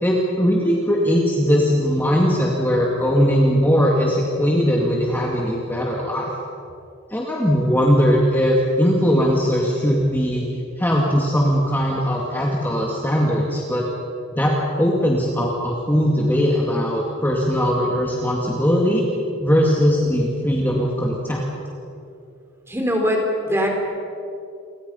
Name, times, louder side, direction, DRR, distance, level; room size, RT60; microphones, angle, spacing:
voice 1, 0.0-6.3 7.1-10.5 10.8-13.9 14.3-19.1 19.4-21.4, equal, 10° left, -3 dB, 2.3 m, -19 dB
voice 2, 22.7-23.7, equal, 10° right, 1 dB, 4.1 m, -21 dB
29.5 x 23.5 x 5.6 m, 2.7 s
head